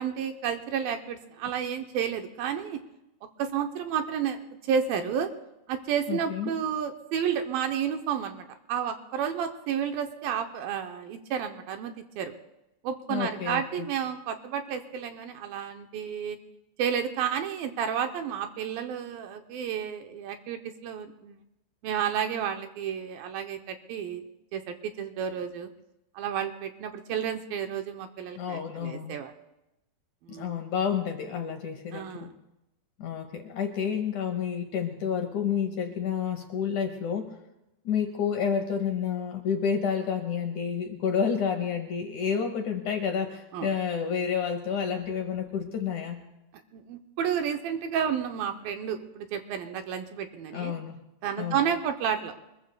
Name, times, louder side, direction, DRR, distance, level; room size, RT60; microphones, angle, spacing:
voice 1, 0.0-2.8 3.2-5.3 5.7-12.3 12.8-16.4 16.8-21.4 21.8-24.2 24.5-25.7 26.2-29.3 30.2-30.5 31.9-32.3 43.5-43.7 46.7-50.7 51.2-52.3, right 8 dB, 75° right, 6 dB, 2.3 m, -31 dB
voice 2, 6.1-6.5 13.1-13.9 28.4-29.1 30.3-32.4 33.0-37.4 37.9-46.2 50.5-51.0 51.4-51.6, left 7 dB, 70° left, 5 dB, 1.9 m, -30 dB
25.0 x 21.5 x 2.2 m, 0.94 s
omnidirectional pair, 4.5 m